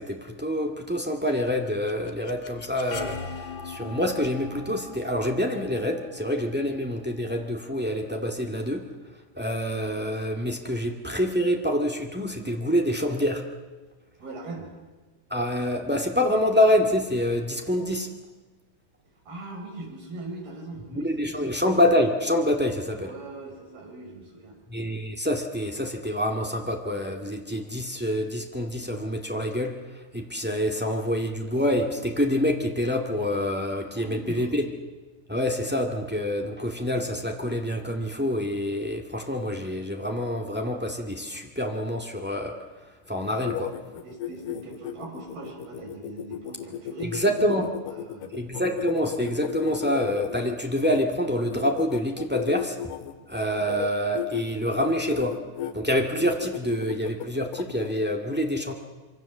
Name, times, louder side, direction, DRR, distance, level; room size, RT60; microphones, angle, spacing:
voice 1, 0.0-3.2 3.6-8.9 9.3-13.4 15.3-18.1 20.9-23.1 24.7-29.7 30.1-34.7 35.3-42.6 43.1-43.7 47.1-47.7 48.3-52.9 53.3-55.4 55.7-58.7, equal, 5° right, 2 dB, 0.7 m, -26 dB
sound 1, 1.5-7.3, left 5 dB, 55° left, 2.2 m, -41 dB
voice 2, 14.2-14.7 19.3-21.7 23.0-24.6 33.9-34.5 44.0-48.3, right 2 dB, 70° right, 1 dB, 7.3 m, -40 dB
sound 2, 43.2-51.0 51.5-53.1 53.6-53.9 54.1-54.4 54.8-55.7 56.2-57.9, left 11 dB, 90° left, 3.5 m, -34 dB
25.5 x 24.5 x 7.4 m, 1.3 s
omnidirectional pair, 4.5 m